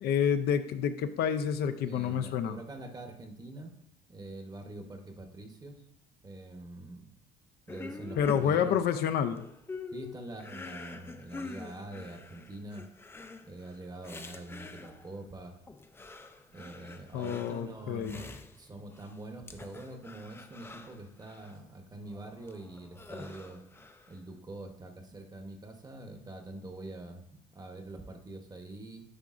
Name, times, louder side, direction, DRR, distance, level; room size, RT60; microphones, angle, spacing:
voice 1, 0.0-2.6 8.2-9.4 17.1-18.2, left 8 dB, 70° left, 8 dB, 0.5 m, -29 dB
voice 2, 1.8-3.7 4.1-5.8 6.2-7.1 7.7-8.8 9.9-12.9 13.5-15.6 16.5-18.3 18.5-23.6 24.1-27.2 27.5-29.0, right 2 dB, 20° right, 5 dB, 0.9 m, -45 dB
sound 1, 7.7-15.2 15.7-19.2 19.5-21.5 22.1-24.2, left 3 dB, 15° left, 0.4 m, -46 dB
9.8 x 4.8 x 2.5 m, 0.71 s
cardioid pair, 110°, 17 cm